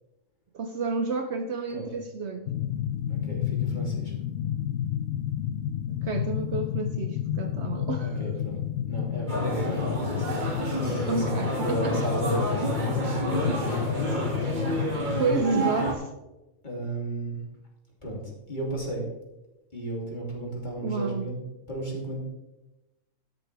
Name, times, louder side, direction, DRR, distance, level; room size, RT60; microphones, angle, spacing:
voice 1, 0.5-2.5 6.0-8.2 11.1-12.0 15.2-16.1 20.8-21.3, right 4 dB, 60° right, 0.9 m, -30 dB
sound 1, 2.5-15.5, left 10 dB, 70° left, 0.8 m, -30 dB
voice 2, 3.1-4.1 7.9-8.6 8.9-10.4 10.9-14.5 16.6-17.4 18.0-18.2 18.5-19.0 19.7-21.4 21.7-22.2, right 1 dB, 35° left, 3.3 m, -33 dB
sound 2, 9.3-15.9, right 2 dB, 35° right, 2.2 m, -30 dB
12.0 x 11.0 x 3.4 m
omnidirectional pair, 1.4 m